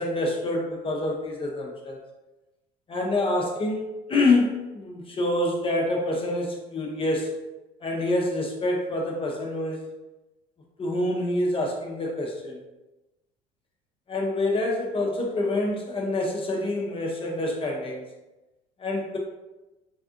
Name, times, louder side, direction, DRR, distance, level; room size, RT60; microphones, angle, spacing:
voice 1, 0.0-2.0 2.9-7.4 7.8-9.9 10.8-12.6 14.1-18.0 18.8-19.2, left 2 dB, 30° left, -1 dB, 0.5 m, -26 dB
3.4 x 2.4 x 2.4 m, 1.1 s
supercardioid pair, 85°, 20 cm